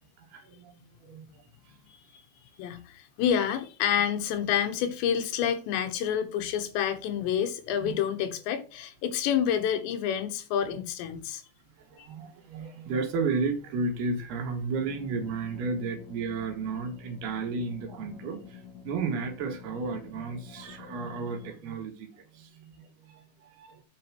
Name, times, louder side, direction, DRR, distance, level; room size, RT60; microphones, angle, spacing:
voice 1, 0.3-1.4 7.8-7.9 10.7-10.8 11.9-23.8, right 4 dB, 70° right, 3.6 m, -33 dB
voice 2, 2.6-11.4 12.0-12.1, left 9 dB, 90° left, 3.5 m, -28 dB
sound 1, 14.8-21.5, left 7 dB, 45° left, 4.4 m, -49 dB
9.3 x 5.4 x 6.0 m
omnidirectional pair, 4.9 m